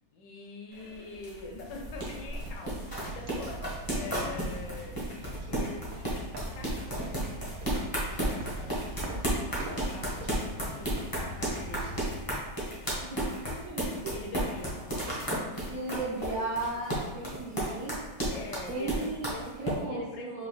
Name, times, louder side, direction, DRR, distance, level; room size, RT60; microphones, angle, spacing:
voice 1, 0.1-7.2 7.8-8.9 9.3-11.9 14.1-14.8 18.3-19.4 19.8-20.5, left 3 dB, 75° left, 1 dB, 1.2 m, -45 dB
sound 1, 0.7-19.8, right 1 dB, 35° left, 0.3 m, -33 dB
sound 2, 1.1-13.1, right 1 dB, 90° right, 1.4 m, -43 dB
voice 2, 12.8-14.1 15.7-18.0 18.7-20.5, right 2 dB, 60° right, -8 dB, 0.8 m, -36 dB
4.8 x 2.3 x 3.0 m, 1.1 s
omnidirectional pair, 2.1 m